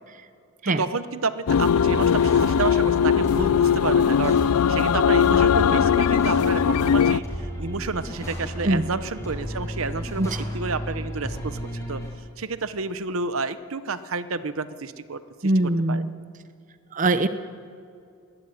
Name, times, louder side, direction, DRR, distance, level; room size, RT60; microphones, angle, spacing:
voice 1, 0.7-4.4 4.7-11.6 11.9-12.0 12.4-16.0, right 4 dB, 65° right, 13 dB, 0.9 m, -30 dB
sound 1, 1.5-7.2, left 7 dB, 85° left, 0.4 m, -19 dB
sound 2, 1.8-12.1, equal, 15° left, 6.5 m, -34 dB
voice 2, 15.4-16.1 16.9-17.3, right 2 dB, 35° right, 11 dB, 0.7 m, -22 dB
20.0 x 15.0 x 9.8 m, 2.5 s
head